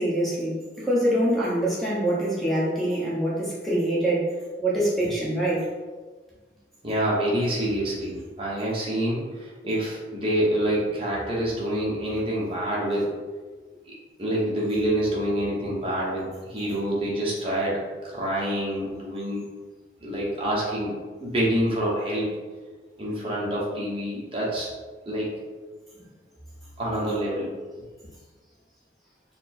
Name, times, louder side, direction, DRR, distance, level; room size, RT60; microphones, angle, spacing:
voice 1, 0.0-4.3 4.6-5.6 25.9-26.1, right 1 dB, ahead, -7 dB, 1.0 m, -25 dB
voice 2, 6.8-13.2 13.9-19.4 20.0-22.3 23.0-24.7 25.1-25.3 26.8-27.5, right 1 dB, 30° right, -5 dB, 1.0 m, -27 dB
4.2 x 2.2 x 4.2 m, 1.4 s
head